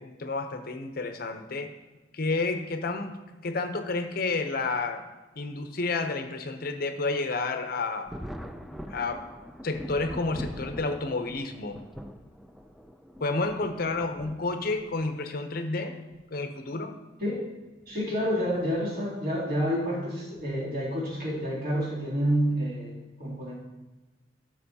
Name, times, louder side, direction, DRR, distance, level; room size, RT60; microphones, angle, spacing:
voice 1, 0.0-1.7 2.1-5.0 5.4-8.1 8.9-9.2 9.6-11.8 13.2-15.9 16.3-16.9, left 3 dB, 55° left, 7 dB, 0.7 m, -30 dB
Thunder, 8.1-15.1 16.1-16.2 17.7-17.9 18.3-18.4 20.4-20.6 21.3-21.6, equal, ahead, 0.3 m, -43 dB
voice 2, 17.9-23.5, equal, 55° right, -6 dB, 2.8 m, -29 dB
12.5 x 6.0 x 2.8 m, 1.2 s
head